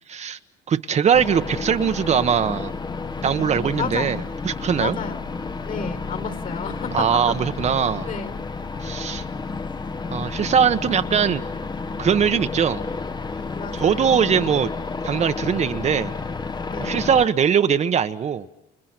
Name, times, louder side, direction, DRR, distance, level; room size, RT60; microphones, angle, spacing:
voice 1, 0.1-0.4 0.7-2.7 3.2-5.0 6.9-8.1 8.8-9.2 10.1-11.4 12.0-12.8 13.7-14.7 15.0-16.1 16.8-18.5, right 7 dB, 40° right, 1.1 m, -21 dB
sound 1, 1.1-17.3, left 4 dB, 25° left, 1.1 m, -31 dB
voice 2, 3.2-4.2 4.8-5.3 5.6-7.3 8.0-8.4 13.5-14.3 16.7-17.0, left 6 dB, 55° left, 4.2 m, -32 dB
30.0 x 29.5 x 6.1 m
cardioid pair, 110°, 17 cm